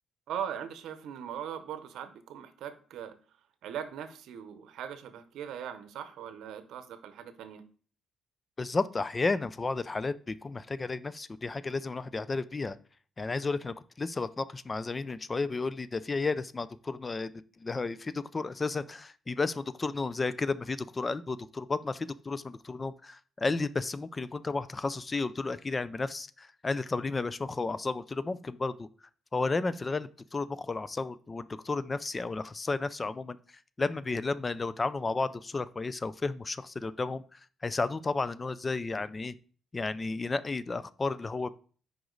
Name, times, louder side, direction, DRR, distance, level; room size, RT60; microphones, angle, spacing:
voice 1, 0.3-3.1 3.6-7.6, right 9 dB, 80° right, 10 dB, 0.7 m, -40 dB
voice 2, 8.6-12.8 13.2-17.3 17.6-28.9 29.3-33.4 33.8-39.3 39.7-41.5, left 3 dB, 25° left, 16 dB, 0.3 m, -32 dB
5.0 x 4.9 x 3.8 m, 0.42 s
cardioid pair, 90°, 0 cm